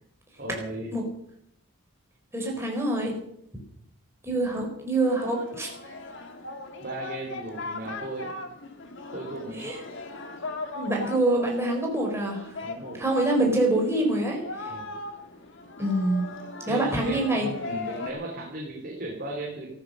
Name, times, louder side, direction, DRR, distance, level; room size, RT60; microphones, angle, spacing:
voice 1, 0.4-0.9 6.8-8.3 9.1-9.7 12.6-13.0 14.7-15.0 16.6-19.7, right 1 dB, 40° right, -1 dB, 3.5 m, -36 dB
voice 2, 2.3-3.1 4.2-5.7 9.6-9.8 10.7-12.5 13.0-14.7 15.8-16.3 16.7-17.5, right 2 dB, 10° right, 0 dB, 4.5 m, -25 dB
Singing, 5.0-18.1, left 2 dB, 55° left, 2.3 m, -39 dB
14.5 x 13.5 x 6.5 m, 0.74 s
head